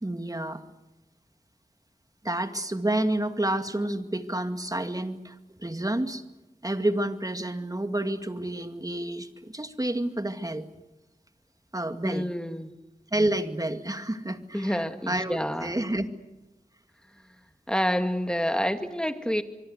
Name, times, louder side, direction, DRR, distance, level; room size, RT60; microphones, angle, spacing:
voice 1, 0.0-0.6 2.2-6.2 6.6-10.7 11.7-12.3 13.1-16.1, right 1 dB, 25° right, 8 dB, 2.2 m, -29 dB
voice 2, 12.0-12.7 14.5-15.8 17.7-19.4, equal, 5° left, 7 dB, 2.4 m, -28 dB
25.5 x 24.0 x 8.0 m, 1.0 s
wide cardioid pair, 40°, 14 cm